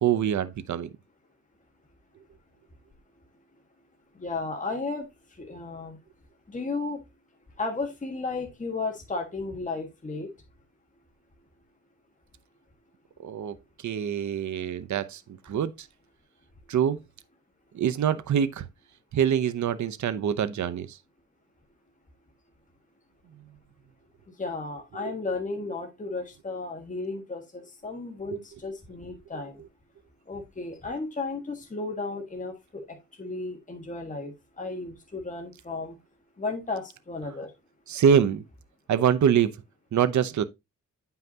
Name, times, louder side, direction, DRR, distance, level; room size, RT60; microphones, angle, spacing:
voice 1, 0.0-0.9 13.2-13.6 13.8-15.9 16.7-17.0 17.7-18.7 19.1-21.0 25.0-25.1 28.3-28.4 37.9-38.4 38.9-39.6 39.9-40.4, right 8 dB, 70° right, 0.8 m, -25 dB
voice 2, 4.2-5.1 5.4-6.0 6.5-7.0 7.6-10.3 24.4-29.5 30.3-32.8 33.2-35.9 36.4-37.5, left 3 dB, 25° left, 1.7 m, -34 dB
9.0 x 5.7 x 2.8 m
cardioid pair, 100°, 30 cm